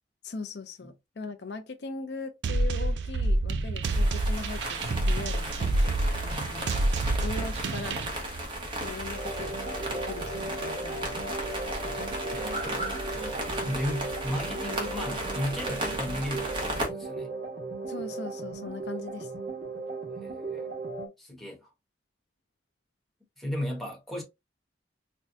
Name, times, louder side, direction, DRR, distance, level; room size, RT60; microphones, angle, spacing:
voice 1, 0.2-6.7 7.2-8.0 8.8-9.6 9.9-11.6 17.9-19.3, left 3 dB, 70° left, 0.5 m, -40 dB
sound 1, 2.4-8.1, right 2 dB, 80° right, 0.4 m, -27 dB
sound 2, 3.8-16.9, right 1 dB, 30° right, 1.1 m, -35 dB
sound 3, 9.2-21.1, right 3 dB, 50° right, 1.3 m, -36 dB
voice 2, 12.3-17.3 20.1-20.7 21.2-21.7 23.4-24.2, equal, ahead, 1.3 m, -35 dB
4.3 x 2.3 x 2.6 m
head